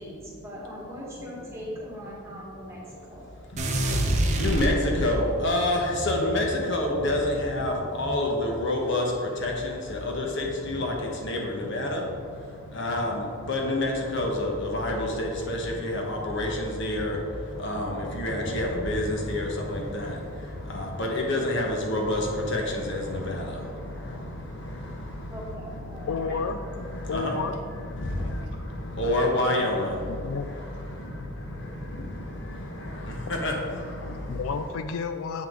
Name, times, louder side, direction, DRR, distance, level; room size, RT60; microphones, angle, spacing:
voice 1, 0.0-2.8 3.1-3.3 25.3-26.4, equal, 10° right, -5 dB, 1.5 m, -40 dB
voice 2, 3.4-34.5, left 1 dB, 55° left, 0 dB, 1.0 m, -29 dB
sound 1, 3.6-5.3, right 1 dB, 30° right, 0.6 m, -26 dB
voice 3, 26.1-26.6 27.1-27.6 30.1-30.5 34.3-35.5, left 5 dB, 70° left, 8 dB, 0.3 m, -31 dB
7.4 x 5.8 x 3.7 m, 2.3 s
head